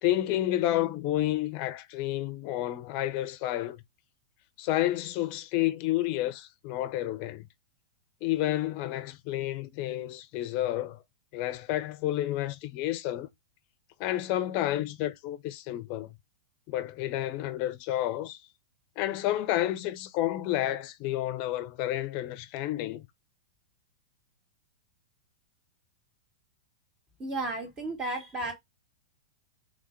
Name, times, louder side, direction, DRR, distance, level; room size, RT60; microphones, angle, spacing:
voice 1, 0.0-3.8 4.6-7.5 8.2-11.0 11.3-13.3 14.0-16.2 16.7-18.4 19.0-23.1, left 14 dB, 45° left, 0.7 m, -30 dB
voice 2, 27.2-28.5, right 2 dB, 25° right, 2.1 m, -33 dB
3.6 x 3.5 x 3.3 m
hypercardioid pair, 120°, 3 cm